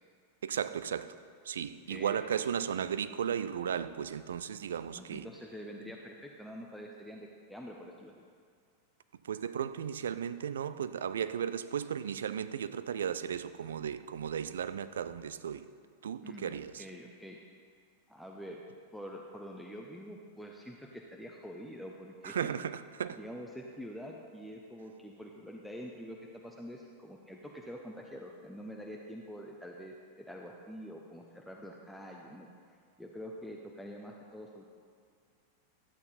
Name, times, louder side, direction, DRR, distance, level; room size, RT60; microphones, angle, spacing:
voice 1, 0.4-1.2 1.4-5.3 9.2-15.7 16.0-16.9 22.2-23.2, right 8 dB, 65° right, 13 dB, 0.4 m, -35 dB
voice 2, 1.9-2.2 5.0-8.2 16.2-17.4 18.1-18.6 18.9-22.4 23.1-34.6, equal, ahead, -1 dB, 0.7 m, -46 dB
12.5 x 8.5 x 4.2 m, 2.1 s
figure-of-eight pair, 90°, 0 cm